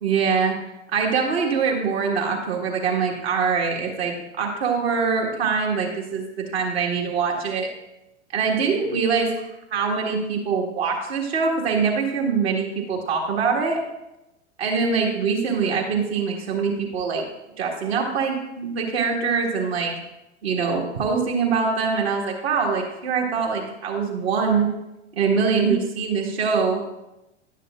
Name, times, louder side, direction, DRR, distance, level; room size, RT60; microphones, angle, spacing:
voice 1, 0.0-0.6 0.9-7.7 8.3-13.8 14.6-17.2 17.6-19.9 20.4-24.7 25.2-26.9, right 5 dB, 60° right, 0 dB, 1.8 m, -23 dB
10.5 x 9.2 x 2.5 m, 0.93 s
figure-of-eight pair, 90°, 36 cm